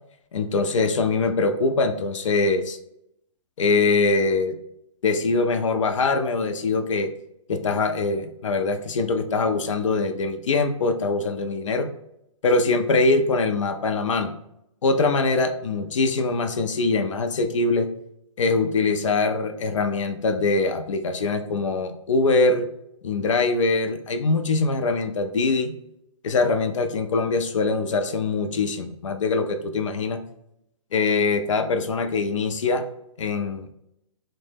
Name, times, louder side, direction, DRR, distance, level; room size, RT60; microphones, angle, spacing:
voice 1, 0.3-2.8 3.6-4.6 5.0-7.1 7.5-11.9 12.4-14.3 14.8-17.9 18.4-22.7 23.0-25.7 26.2-30.2 30.9-32.8 33.2-33.7, left 3 dB, 65° left, 7 dB, 0.4 m, -23 dB
3.2 x 2.1 x 3.3 m, 0.80 s
figure-of-eight pair, 130°, 17 cm